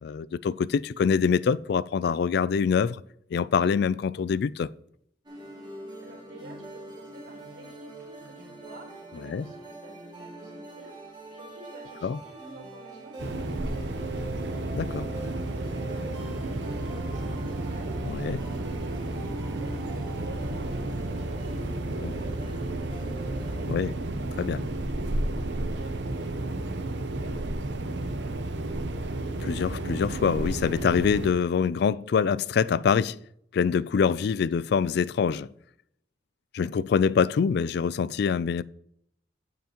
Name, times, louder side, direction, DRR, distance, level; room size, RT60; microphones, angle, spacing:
voice 1, 0.0-3.0 3.3-4.7 9.3-9.5 12.0-12.2 14.7-15.1 18.1-18.4 22.0-22.2 23.7-24.0 24.4-24.7 29.4-33.2 33.5-35.5 36.5-38.6, left 6 dB, 60° left, 0.3 m, -25 dB
sound 1, 5.3-23.7, right 1 dB, 25° right, 2.2 m, -43 dB
voice 2, 6.0-13.8 14.1-14.5 15.2-19.8 20.1-24.0 24.9-28.5, right 2 dB, 85° right, 4.0 m, -49 dB
sound 2, 13.2-31.3, right 2 dB, 65° right, 0.8 m, -32 dB
sound 3, 20.3-26.7, equal, 80° left, 2.4 m, -46 dB
15.5 x 5.9 x 2.9 m
head